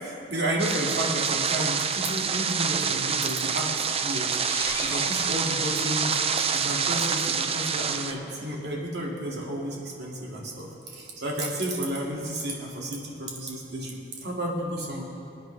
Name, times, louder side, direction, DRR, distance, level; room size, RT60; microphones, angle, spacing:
voice 1, 0.0-4.3 4.8-6.2 6.5-15.0, right 1 dB, 65° right, -3 dB, 2.3 m, -32 dB
sound 1, 0.6-8.1, right 6 dB, 35° right, 0.5 m, -27 dB
sound 2, 4.4-6.3, left 1 dB, 15° left, 1.6 m, -38 dB
26.5 x 9.1 x 3.4 m, 2.6 s
head